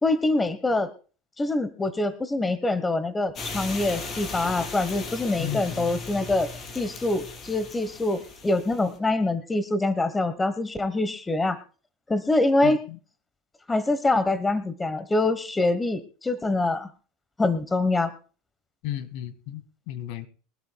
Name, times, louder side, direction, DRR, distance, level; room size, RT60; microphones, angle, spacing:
voice 1, 0.0-0.9 1.4-6.5 6.7-11.6 12.1-12.8 13.7-16.9 17.4-18.1, left 2 dB, 10° left, 13 dB, 1.1 m, -25 dB
sound 1, 3.4-9.0, left 3 dB, 35° left, 3.7 m, -37 dB
voice 2, 5.4-5.9 12.6-13.0 18.8-20.3, left 12 dB, 65° left, 14 dB, 1.9 m, -34 dB
23.0 x 12.5 x 2.3 m, 0.37 s
supercardioid pair, 135°, 0 cm